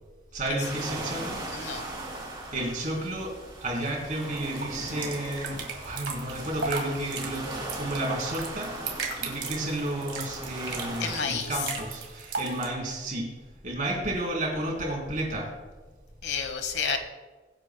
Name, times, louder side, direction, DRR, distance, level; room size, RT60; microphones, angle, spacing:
voice 1, 0.3-1.9 2.5-3.3 3.6-7.5 7.8-8.8 9.2-13.3 13.6-15.5, right 1 dB, 50° right, -2 dB, 3.5 m, -32 dB
sound 1, 0.6-11.2, right 2 dB, 25° right, 3.1 m, -39 dB
voice 2, 1.5-1.9 11.0-11.6 16.2-17.0, left 6 dB, 70° left, 8 dB, 1.1 m, -30 dB
sound 2, 3.8-12.7, right 4 dB, 75° right, 2.2 m, -37 dB
21.5 x 8.8 x 2.2 m, 1.3 s
head